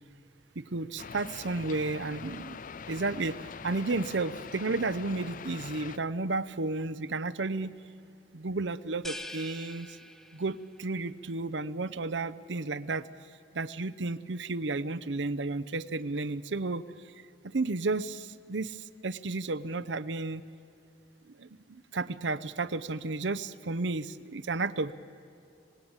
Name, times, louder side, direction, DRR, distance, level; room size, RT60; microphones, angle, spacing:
voice 1, 0.6-2.6 2.9-7.7 8.3-10.0 10.3-13.1 13.5-17.1 17.4-20.4 21.3-24.9, right 3 dB, 75° right, 15 dB, 0.8 m, -32 dB
sound 1, 1.0-6.0, left 5 dB, 45° left, 0.5 m, -43 dB
sound 2, 9.0-10.8, left 1 dB, ahead, 0.9 m, -43 dB
26.5 x 19.5 x 8.9 m, 2.8 s
head